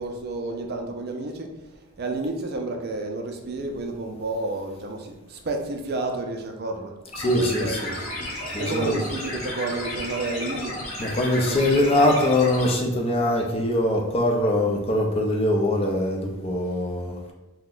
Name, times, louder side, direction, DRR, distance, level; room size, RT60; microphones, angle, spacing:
voice 1, 0.0-1.5 2.0-6.9 7.3-7.8 8.6-10.8 11.5-11.9, right 2 dB, 50° right, 4 dB, 0.4 m, -30 dB
sound 1, 7.1-12.7, left 1 dB, 85° left, 1.0 m, -33 dB
voice 2, 7.2-7.9 8.5-9.0 11.0-17.2, left 1 dB, 30° left, 1 dB, 0.5 m, -22 dB
2.8 x 2.1 x 3.8 m, 1.0 s
head